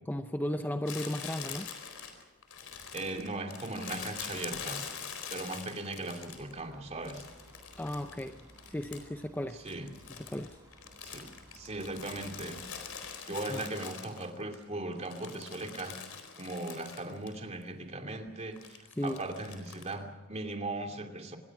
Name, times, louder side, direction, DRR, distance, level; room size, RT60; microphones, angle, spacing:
voice 1, 0.1-1.7 7.8-8.4 8.7-9.6 10.1-10.6 13.5-13.6 19.0-19.2, left 1 dB, 10° left, 8 dB, 0.7 m, -35 dB
Crumpling crinkling, 0.9-6.6 7.1-9.2 9.5-14.6 14.9-17.4 17.6-17.7 18.6-19.9, left 7 dB, 80° left, 4.4 m, -44 dB
voice 2, 2.9-4.8 5.3-7.2 9.6-9.9 11.0-11.3 11.5-12.6 13.3-16.0 16.4-21.4, right 2 dB, 30° right, 4 dB, 2.7 m, -38 dB
sound 1, 6.2-13.2, right 1 dB, 15° right, 4.8 m, -57 dB
25.5 x 21.5 x 6.0 m, 1.1 s
head